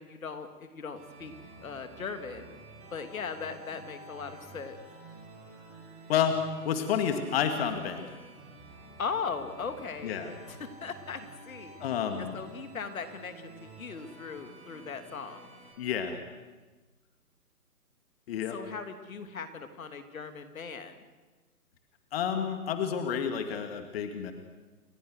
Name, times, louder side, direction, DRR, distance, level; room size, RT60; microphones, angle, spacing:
voice 1, 0.0-1.3 1.6-2.5 2.9-4.8 9.0-10.2 10.5-11.8 12.3-15.5 18.5-20.9, left 5 dB, 65° left, 8 dB, 2.9 m, -38 dB
sound 1, 1.0-15.7, right 2 dB, 15° right, 7.5 m, -50 dB
voice 2, 6.6-8.1 10.0-10.3 11.8-12.3 15.8-16.2 18.3-18.6 22.1-24.3, left 8 dB, 40° left, 6 dB, 2.4 m, -30 dB
30.0 x 25.0 x 6.5 m, 1.3 s
figure-of-eight pair, 135°, 45 cm